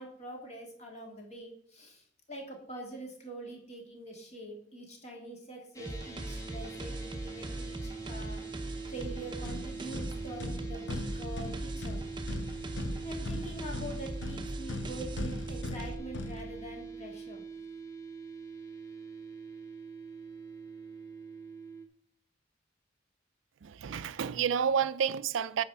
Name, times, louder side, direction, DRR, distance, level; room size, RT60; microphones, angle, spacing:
voice 1, 0.0-8.4 8.9-12.0 13.0-17.4, right 1 dB, 35° left, 2.2 m, -44 dB
sound 1, 5.7-21.8, right 5 dB, 15° left, 1.1 m, -44 dB
sound 2, 5.9-16.0, right 1 dB, 25° right, 0.7 m, -40 dB
sound 3, 9.0-17.0, left 2 dB, 70° left, 0.8 m, -40 dB
voice 2, 23.6-25.6, right 7 dB, 90° right, 0.4 m, -30 dB
9.7 x 4.2 x 6.8 m
head